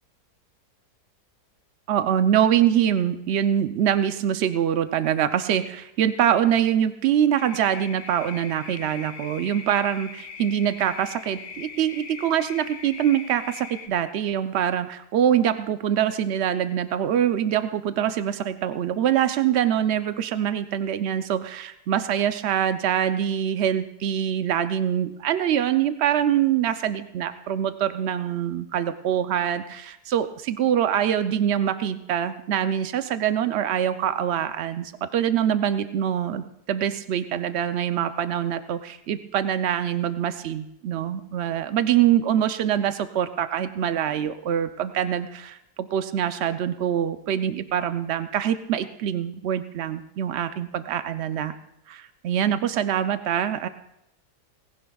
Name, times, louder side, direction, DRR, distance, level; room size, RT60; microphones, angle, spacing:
voice 1, 1.9-51.5 51.9-53.7, right 10 dB, 80° right, 10 dB, 0.6 m, -24 dB
sound 1, 7.4-13.9, left 5 dB, 55° left, 1.3 m, -40 dB
19.0 x 16.5 x 2.3 m, 0.83 s
omnidirectional pair, 1.8 m